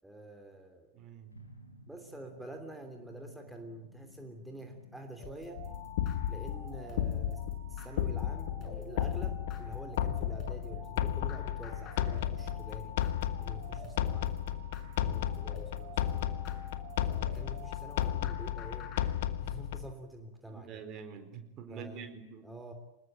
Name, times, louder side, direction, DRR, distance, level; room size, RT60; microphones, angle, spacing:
voice 1, 0.0-0.9 1.9-5.6 6.3-7.4 7.7-13.0 13.4-14.4 15.1-16.4 17.1-18.9 19.4-20.8 21.7-22.1 22.4-22.7, right 1 dB, ahead, 4 dB, 3.1 m, -47 dB
voice 2, 0.9-1.4 15.0-15.3 20.5-22.5, right 7 dB, 35° right, 7 dB, 4.4 m, -46 dB
sound 1, 1.3-19.5, equal, 85° left, 4.0 m, -55 dB
sound 2, 5.2-19.0, left 3 dB, 35° left, 6.3 m, -49 dB
sound 3, 5.6-19.9, left 11 dB, 55° left, 1.3 m, -34 dB
25.0 x 21.0 x 9.1 m, 0.85 s
figure-of-eight pair, 90°, 0 cm